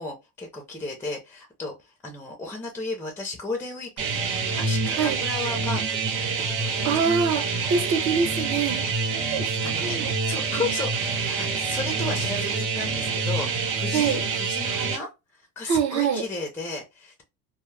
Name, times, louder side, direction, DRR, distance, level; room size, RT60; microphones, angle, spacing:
voice 1, 0.0-4.2 4.6-6.0 6.4-7.0 9.6-17.2, left 3 dB, 5° left, 0.5 m, -34 dB
sound 1, 4.0-15.0, right 4 dB, 80° right, 1.0 m, -27 dB
voice 2, 6.8-8.9 9.3-10.1 13.9-14.2 15.7-16.2, right 6 dB, 50° right, 0.6 m, -25 dB
2.2 x 2.0 x 3.1 m
cardioid pair, 125°, 37 cm